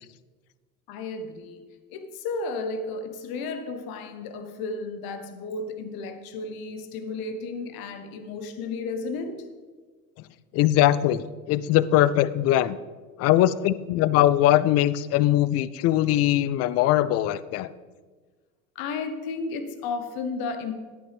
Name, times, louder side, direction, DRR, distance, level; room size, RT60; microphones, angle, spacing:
voice 1, 0.9-1.6 1.9-9.4 18.7-20.7, left 3 dB, 50° left, 8 dB, 1.2 m, -33 dB
voice 2, 10.5-12.8 13.2-17.7, left 13 dB, 35° left, 17 dB, 0.4 m, -21 dB
11.5 x 9.4 x 3.5 m, 1.4 s
hypercardioid pair, 90°, 45 cm